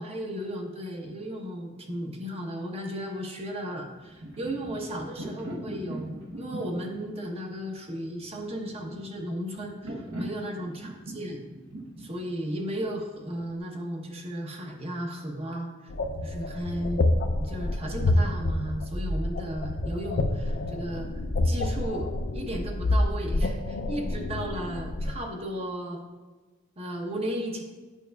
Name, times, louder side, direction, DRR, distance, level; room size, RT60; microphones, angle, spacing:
voice 1, 0.0-10.7 11.1-11.4 12.0-15.9 16.2-17.0 17.4-21.1 21.4-26.0 26.8-27.6, equal, 30° right, 1 dB, 0.8 m, -35 dB
sound 1, 3.9-13.6, right 1 dB, 65° right, 1.0 m, -41 dB
sound 2, 15.9-25.2, left 2 dB, 50° left, 0.4 m, -28 dB
8.9 x 5.6 x 2.3 m, 1.3 s
head